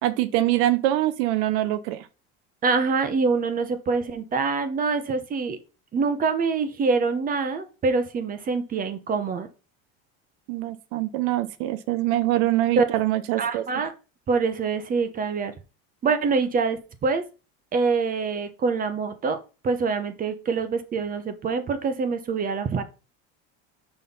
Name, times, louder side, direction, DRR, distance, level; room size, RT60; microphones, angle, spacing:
voice 1, 0.0-2.1 10.5-13.7, right 14 dB, 75° right, 0.7 m, -24 dB
voice 2, 2.6-5.6 5.9-9.5 12.8-12.9 13.4-13.9 14.3-15.5 16.0-17.2 17.7-19.4 19.6-22.8, right 4 dB, 25° right, 0.8 m, -25 dB
5.6 x 4.3 x 5.4 m
cardioid pair, 135°, 31 cm